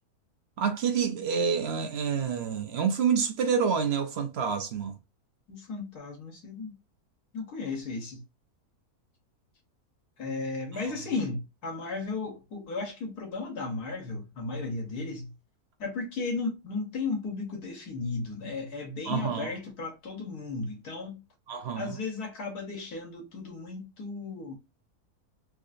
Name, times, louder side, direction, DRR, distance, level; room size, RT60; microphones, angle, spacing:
voice 1, 0.6-4.9 19.1-19.5 21.5-21.9, right 6 dB, 65° right, 0.6 m, -28 dB
voice 2, 5.5-6.7 7.3-8.2 10.2-15.3 15.8-21.2 21.7-24.5, left 3 dB, 80° left, 1.6 m, -35 dB
3.6 x 2.5 x 2.5 m
omnidirectional pair, 1.6 m